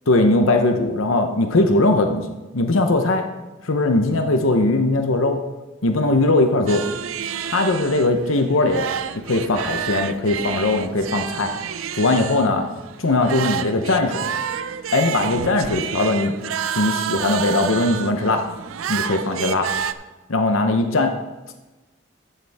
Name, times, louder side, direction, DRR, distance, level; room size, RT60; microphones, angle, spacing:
voice 1, 0.1-2.3 2.5-3.2 3.6-5.4 5.8-6.8 7.4-8.9 9.2-11.5 12.0-12.7 13.0-14.3 14.9-16.3 16.8-18.4 18.9-19.7 20.3-21.1, left 2 dB, 85° left, 5 dB, 0.8 m, -19 dB
sound 1, 6.7-19.9, right 8 dB, 90° right, 0.4 m, -29 dB
14.0 x 6.7 x 3.5 m, 1.1 s
head